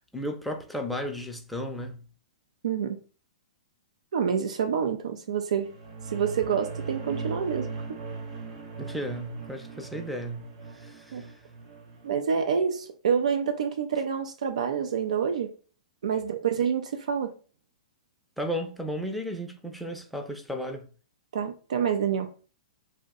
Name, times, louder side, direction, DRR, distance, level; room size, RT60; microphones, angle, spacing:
voice 1, 0.1-2.0 8.8-11.4 16.1-16.2 18.4-20.9, equal, ahead, 0.5 m, -34 dB
voice 2, 2.6-3.0 4.1-5.7 6.1-7.7 11.1-11.2 12.0-15.5 16.0-17.3 21.3-22.3, right 7 dB, 75° right, 0.4 m, -27 dB
sound 1, 5.5-12.2, right 4 dB, 50° right, 1.0 m, -39 dB
2.6 x 2.1 x 3.6 m
hypercardioid pair, 125°, 4 cm